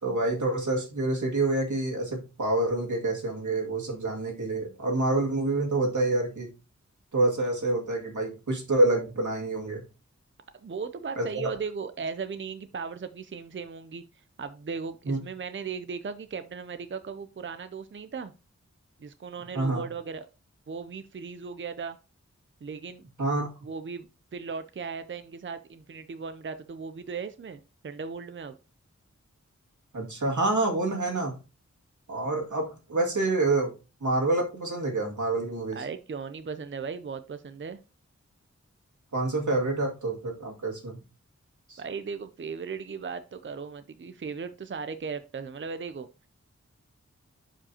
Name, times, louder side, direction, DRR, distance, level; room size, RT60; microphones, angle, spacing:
voice 1, 0.0-6.5 7.1-9.8 11.2-11.3 15.1-15.2 19.5-19.8 23.2-23.5 29.9-31.4 32.1-33.7 34.0-35.8 39.1-41.0 41.7-41.8, right 2 dB, 85° right, 0 dB, 2.2 m, -27 dB
voice 2, 10.6-18.3 19.0-20.3 20.7-22.0 22.6-23.0 23.6-28.6 35.7-37.8 41.8-46.1, right 5 dB, 40° right, 10 dB, 0.5 m, -37 dB
11.5 x 5.0 x 2.8 m, 0.31 s
wide cardioid pair, 75°, 29 cm